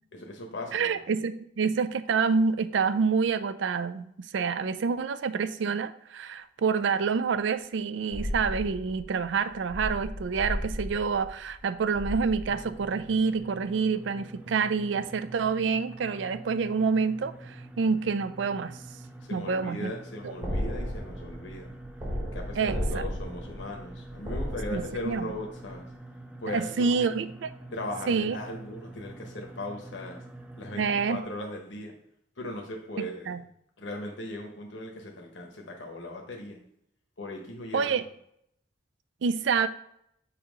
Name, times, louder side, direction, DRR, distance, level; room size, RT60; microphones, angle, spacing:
voice 1, 0.1-1.0 19.2-21.7 22.3-25.9 26.4-27.1 27.7-30.2 30.6-31.9 32.4-33.4 33.8-36.6 37.2-37.9, left 1 dB, 85° left, 1 dB, 1.1 m, -38 dB
voice 2, 0.7-18.8 19.3-19.9 20.2-20.3 22.6-23.1 24.7-25.3 26.5-27.5 28.1-28.4 30.8-31.2 33.0-33.4 37.7-38.0 39.2-39.7, right 5 dB, 80° right, 13 dB, 0.4 m, -27 dB
sound 1, 8.1-13.1 20.4-25.4 25.6-25.7, equal, 25° right, 1.3 m, -35 dB
sound 2, 12.4-31.2, right 1 dB, 5° right, 0.5 m, -46 dB
6.8 x 2.9 x 5.1 m, 0.73 s
head